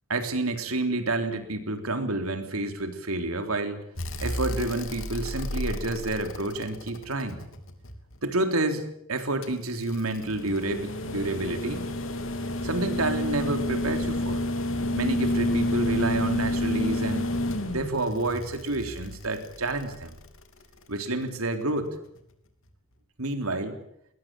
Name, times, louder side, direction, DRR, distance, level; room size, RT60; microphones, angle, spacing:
voice 1, 0.1-3.8 4.2-7.4 8.2-11.8 12.6-14.5 15.0-17.3 17.7-20.2 20.9-21.9 23.2-23.8, right 2 dB, 85° right, 7 dB, 3.6 m, -29 dB
sound 1, 4.0-8.1 9.4-20.6 22.2-22.3, left 1 dB, 70° left, 3.2 m, -30 dB
21.5 x 20.0 x 9.0 m, 0.76 s
head